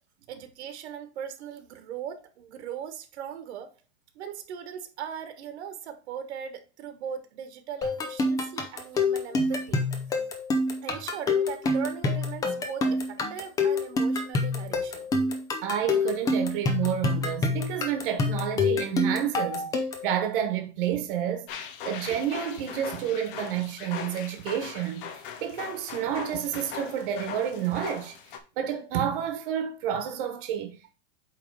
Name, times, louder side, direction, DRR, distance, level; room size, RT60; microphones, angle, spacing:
voice 1, 0.3-3.7 4.1-9.8 10.8-15.1, right 8 dB, 75° right, 1.4 m, -39 dB
sound 1, 7.8-20.1, left 3 dB, 10° left, 0.5 m, -27 dB
voice 2, 15.6-19.6 20.0-21.5 21.8-25.0 25.4-28.2 28.6-30.9, right 9 dB, 50° right, 1.2 m, -29 dB
sound 2, 21.5-28.4, left 7 dB, 50° left, 1.1 m, -40 dB
8.4 x 3.5 x 4.7 m
supercardioid pair, 165°, 34 cm